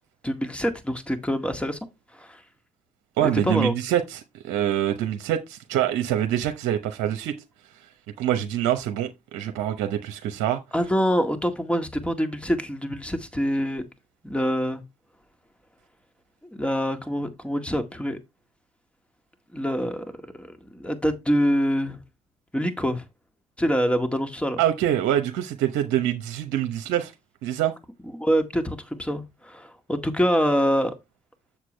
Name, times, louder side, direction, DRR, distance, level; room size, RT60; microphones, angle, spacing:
voice 1, 0.2-1.8 2.1-2.4 3.2-3.7 10.7-13.8 14.2-14.8 16.5-18.2 19.5-22.0 22.5-23.0 23.6-24.6 28.1-31.0, equal, 5° left, 1.9 m, -25 dB
voice 2, 3.2-7.3 8.2-10.6 24.6-27.1 27.4-27.7, right 11 dB, 80° right, 0.8 m, -25 dB
7.5 x 6.8 x 3.3 m
hypercardioid pair, 50°, 16 cm